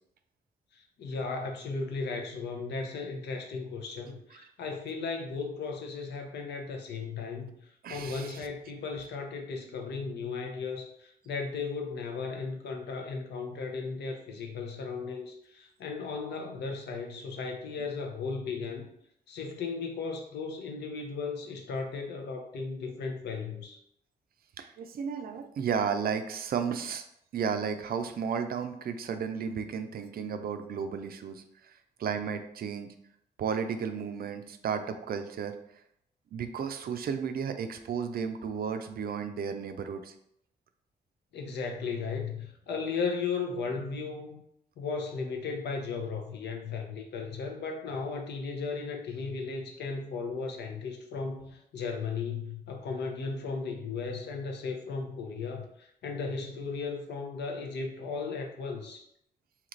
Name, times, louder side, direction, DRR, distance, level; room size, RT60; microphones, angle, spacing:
voice 1, 0.7-7.6 7.9-18.9 19.3-23.8 41.3-44.4 44.8-59.0, left 4 dB, 80° left, 3 dB, 0.6 m, -36 dB
voice 2, 7.8-8.5 24.6-27.0 27.3-31.7 32.0-32.9 33.4-35.6 36.3-40.1, right 7 dB, 60° right, 8 dB, 0.4 m, -33 dB
2.9 x 2.4 x 3.1 m, 0.73 s
cardioid pair, 60°, 18 cm